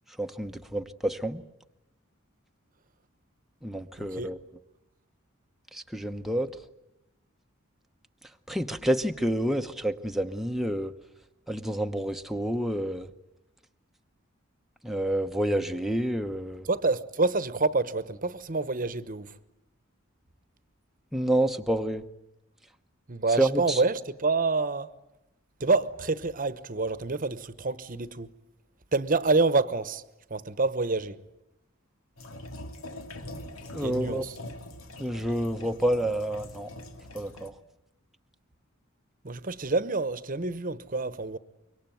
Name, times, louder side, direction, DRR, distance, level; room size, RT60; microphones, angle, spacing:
voice 1, 0.2-1.4 3.6-4.4 5.7-6.5 8.5-10.9 11.5-13.1 14.8-16.6 21.1-22.0 23.4-23.8 33.7-34.3 35.0-36.7 37.1-37.5, right 1 dB, ahead, 0.9 m, -28 dB
voice 2, 4.0-4.3 16.6-19.3 23.1-24.9 25.6-28.3 28.9-30.0 30.3-31.2 33.8-34.4 39.2-41.4, right 3 dB, 40° right, 1.0 m, -27 dB
sound 1, 32.2-37.5, left 1 dB, 90° left, 2.4 m, -43 dB
25.5 x 23.5 x 9.2 m
head